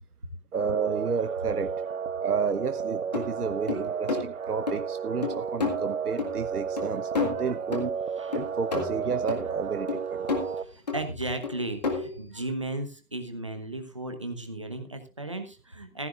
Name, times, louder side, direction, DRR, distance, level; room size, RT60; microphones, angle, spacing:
sound 1, 0.5-10.6, right 7 dB, 60° right, 0.6 m, -33 dB
voice 1, 0.5-1.7 2.2-7.9 8.3-10.2 10.5-10.6, right 5 dB, 80° right, 8 dB, 1.1 m, -31 dB
Drums percussions, 3.1-3.2 3.7-4.2 4.7-4.8 5.2-5.8 6.2-6.3 6.8-6.9 7.2-8.0 8.3-9.4 9.9-10.5 10.9-11.0 11.4-12.2, left 5 dB, 25° left, 2.0 m, -30 dB
voice 2, 10.2-16.1, right 2 dB, 20° right, 5 dB, 1.0 m, -35 dB
16.0 x 13.5 x 2.4 m, 0.31 s
figure-of-eight pair, 170°, 45 cm